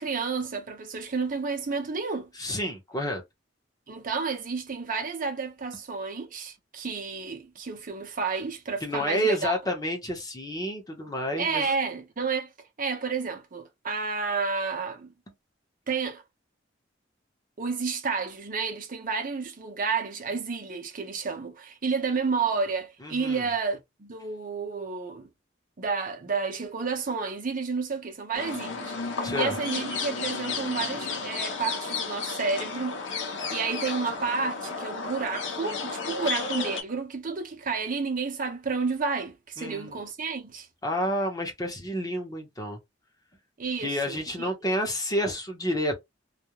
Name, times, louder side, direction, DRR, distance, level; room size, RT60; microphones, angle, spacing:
voice 1, 0.0-2.3 3.9-9.6 11.4-12.5 12.8-15.1 15.9-16.2 17.6-25.3 25.8-33.0 33.5-40.7 43.6-44.5, right 4 dB, 45° right, 0.7 m, -31 dB
voice 2, 2.4-3.2 8.8-11.7 23.0-23.4 29.2-29.5 39.6-40.0 40.8-42.8 43.8-46.0, equal, 20° left, 0.8 m, -29 dB
sound 1, 28.3-36.8, left 4 dB, 75° left, 0.7 m, -33 dB
2.4 x 2.1 x 2.9 m
head